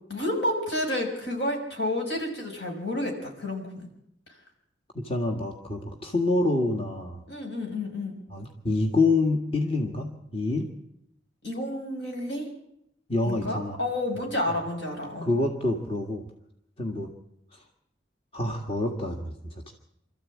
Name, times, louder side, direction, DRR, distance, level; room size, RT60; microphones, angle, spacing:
voice 1, 0.1-3.9 7.3-8.1 11.4-12.5 13.2-15.3, left 1 dB, 75° left, 1 dB, 5.9 m, -30 dB
voice 2, 5.0-7.2 8.3-10.7 13.1-13.8 15.2-16.3 16.8-17.1 17.5-17.6 18.3-19.7, left 2 dB, 30° left, 2 dB, 1.8 m, -27 dB
26.0 x 14.0 x 8.6 m, 0.79 s
head